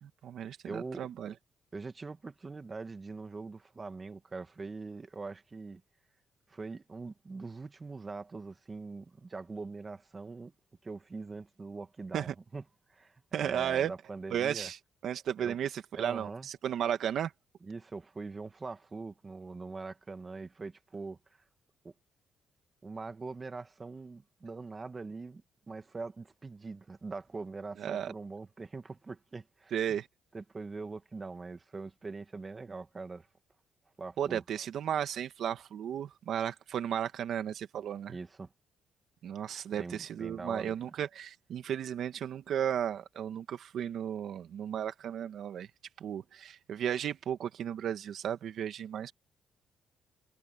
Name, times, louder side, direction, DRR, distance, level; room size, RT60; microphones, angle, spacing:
voice 1, 0.0-1.3 12.1-12.3 13.3-13.9 14.3-14.8 15.0-17.3 27.8-28.1 29.7-30.1 34.2-38.2 39.2-45.7 46.0-49.1, right 9 dB, 70° right, 1.6 m, -34 dB
voice 2, 0.6-1.3 1.7-5.8 6.5-10.5 10.8-12.6 12.9-14.7 15.4-15.6 16.0-16.5 17.6-21.4 21.8-21.9 22.8-29.7 30.3-33.3 34.0-34.4 38.1-38.5 39.7-40.9, right 3 dB, 30° right, 2.1 m, -43 dB
cardioid pair, 90°, 0 cm